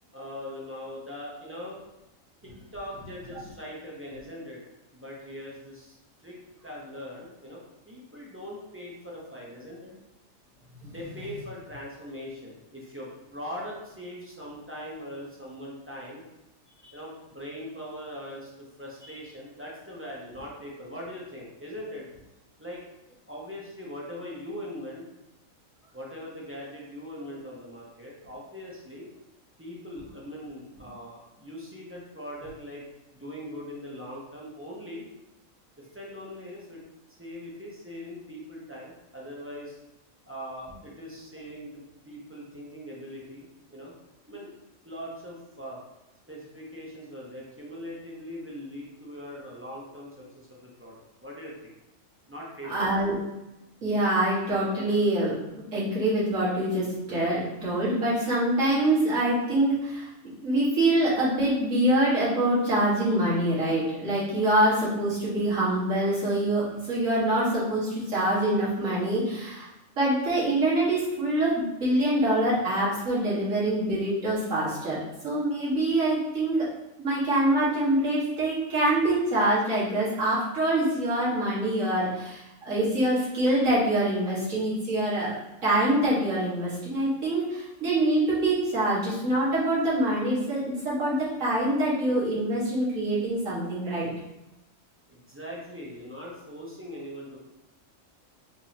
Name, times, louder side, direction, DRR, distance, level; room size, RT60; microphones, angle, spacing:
voice 1, 0.1-1.8 2.4-4.6 4.9-5.9 6.2-9.9 10.8-16.2 16.9-22.1 22.6-22.8 23.3-25.1 25.9-29.1 29.6-32.8 33.1-35.0 35.8-36.8 37.2-39.8 40.3-43.9 44.3-44.5 44.8-45.8 46.3-51.7 52.3-52.9 95.1-97.4, equal, 10° right, -5 dB, 0.8 m, -41 dB
voice 2, 52.7-53.2 53.8-60.1 60.4-69.7 70.0-75.0 75.2-76.7 77.0-94.1, right 1 dB, 80° right, -8 dB, 2.0 m, -25 dB
5.0 x 3.6 x 2.8 m, 0.94 s
omnidirectional pair, 1.4 m